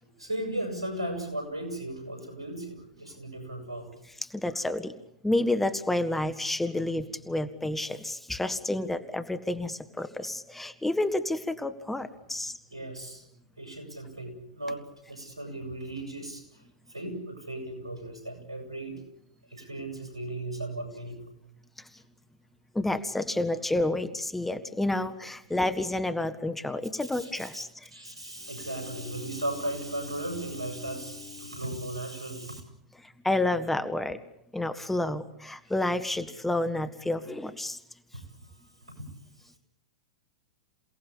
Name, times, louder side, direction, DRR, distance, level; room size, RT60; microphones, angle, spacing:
voice 1, 0.0-3.9 12.7-13.2 13.6-19.0 19.5-21.2 27.0-27.6 27.9-32.6 38.1-38.5 39.0-39.1, right 1 dB, 85° right, 5 dB, 7.9 m, -36 dB
voice 2, 4.2-4.9 5.2-12.5 21.8-21.9 22.7-27.9 33.0-34.2 34.5-37.8, left 2 dB, 5° left, 10 dB, 1.5 m, -30 dB
Bowed string instrument, 28.3-32.4, left 7 dB, 30° left, 3.5 m, -47 dB
28.0 x 18.0 x 8.7 m, 0.79 s
figure-of-eight pair, 100°, 3 cm